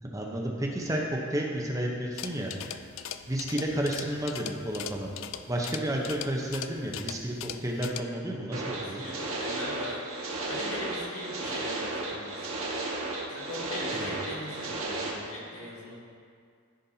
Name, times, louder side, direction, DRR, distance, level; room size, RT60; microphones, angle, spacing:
voice 1, 0.0-2.5 3.3-5.1 5.5-9.0 13.9-14.1, right 1 dB, 15° right, -1 dB, 0.8 m, -31 dB
sound 1, 2.1-8.0, left 9 dB, 65° left, 0.3 m, -40 dB
sound 2, 8.5-15.1, right 2 dB, 90° right, 1.4 m, -34 dB
voice 2, 8.8-10.0 10.4-12.4 13.3-15.9, left 1 dB, 90° left, -5 dB, 2.0 m, -40 dB
14.0 x 5.3 x 2.8 m, 2.1 s
head